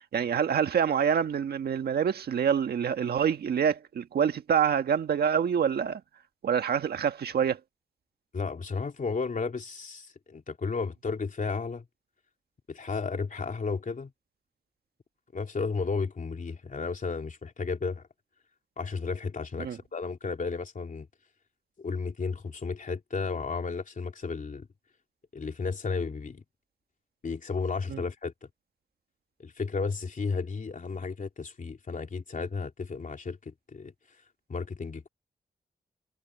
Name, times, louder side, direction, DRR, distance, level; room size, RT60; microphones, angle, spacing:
voice 1, 0.1-6.0 6.4-7.6 19.6-19.8 27.9-28.0, right 7 dB, 90° right, 1.6 m, -26 dB
voice 2, 8.3-11.8 12.7-14.1 15.3-18.0 18.8-21.1 21.8-24.7 25.3-26.4 27.2-28.5 29.4-33.9 34.5-35.1, left 4 dB, 55° left, 3.2 m, -33 dB
cardioid pair, 60°, 16 cm